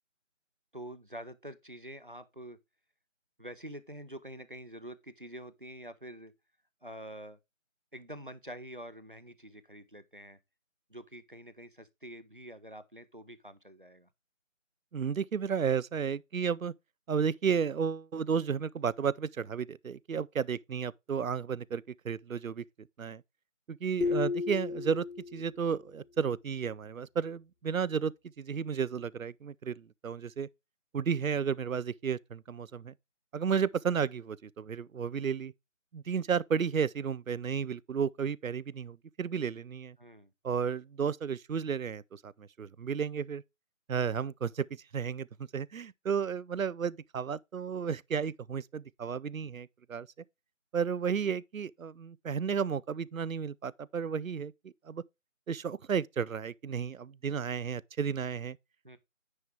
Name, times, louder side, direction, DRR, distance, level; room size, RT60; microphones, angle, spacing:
voice 1, 0.7-2.6 3.4-6.3 6.8-7.4 7.9-10.4 10.9-14.1 24.0-24.2 40.0-40.3 58.8-59.0, right 1 dB, 40° right, 0.7 m, -46 dB
voice 2, 14.9-16.7 17.1-22.6 23.0-23.2 23.7-25.1 25.3-30.5 30.9-32.9 33.3-35.5 35.9-40.0 40.4-43.4 43.9-44.7 44.9-45.3 45.5-50.1 50.7-55.0 55.5-58.6, right 6 dB, 90° right, 0.6 m, -33 dB
sound 1, 24.0-25.7, left 4 dB, 75° left, 0.7 m, -33 dB
9.6 x 4.5 x 3.4 m
figure-of-eight pair, 170°, 39 cm